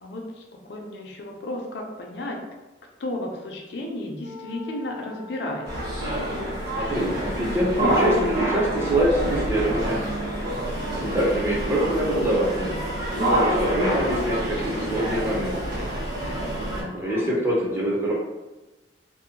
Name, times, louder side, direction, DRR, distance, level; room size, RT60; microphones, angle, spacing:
voice 1, 0.0-2.4 3.0-6.0 16.7-17.4, left 1 dB, 60° left, 1 dB, 0.5 m, -34 dB
Wind instrument woodwind instrument, 4.2-8.4, left 5 dB, 85° right, 1.0 m, -42 dB
sound 1, 5.6-16.8, equal, 55° right, 1.0 m, -27 dB
voice 2, 6.8-10.0 10.9-12.7 13.2-15.9 16.9-18.1, right 1 dB, 10° right, -6 dB, 0.5 m, -25 dB
2.6 x 2.1 x 2.7 m, 1.1 s
head